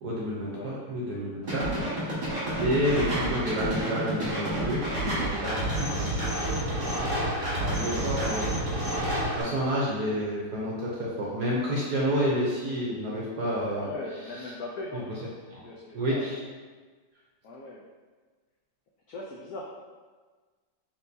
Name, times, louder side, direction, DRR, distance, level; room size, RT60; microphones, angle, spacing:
voice 1, 0.0-1.7 2.0-2.2 2.6-5.9 7.7-8.5 9.4-13.9 15.5-15.6 15.9-16.4, equal, 65° right, -5 dB, 1.1 m, -29 dB
voice 2, 0.5-0.9 1.4-2.0 2.5-2.7 7.6-8.6 13.7-15.2 15.6-16.5 17.4-17.8 19.1-19.7, left 2 dB, 80° left, -3 dB, 0.8 m, -41 dB
sound 1, 1.5-9.4, right 1 dB, 30° right, 1.1 m, -29 dB
4.4 x 3.5 x 2.6 m, 1.4 s
omnidirectional pair, 2.1 m